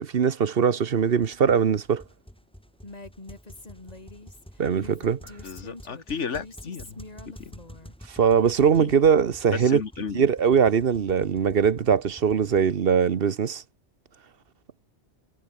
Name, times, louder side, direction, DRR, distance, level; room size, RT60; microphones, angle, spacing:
voice 1, 0.0-2.0 4.6-5.2 8.1-9.8 10.1-13.6, right 7 dB, 55° right, 1.1 m, -21 dB
sound 1, 1.0-12.8, equal, 5° left, 7.6 m, -48 dB
Female speech woman speaking, 2.8-7.9, left 2 dB, 35° left, 2.7 m, -45 dB
voice 2, 5.4-7.0 7.3-7.5 8.8-8.9 9.5-10.2, left 6 dB, 90° left, 1.9 m, -34 dB
omnidirectional pair, 1.2 m